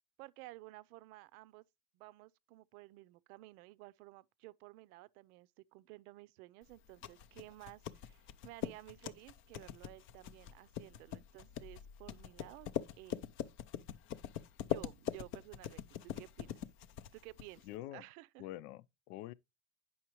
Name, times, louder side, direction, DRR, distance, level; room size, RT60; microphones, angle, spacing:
voice 1, 0.2-1.6 1.9-12.7 13.0-13.3 14.6-16.6 17.1-18.5, right 19 dB, 80° right, 0.7 m, -54 dB
sound 1, 6.7-17.7, left 10 dB, 30° left, 0.4 m, -43 dB
voice 2, 17.6-18.0 18.4-19.3, left 14 dB, 75° left, 0.6 m, -46 dB
9.4 x 5.7 x 3.0 m
supercardioid pair, 140°, 44 cm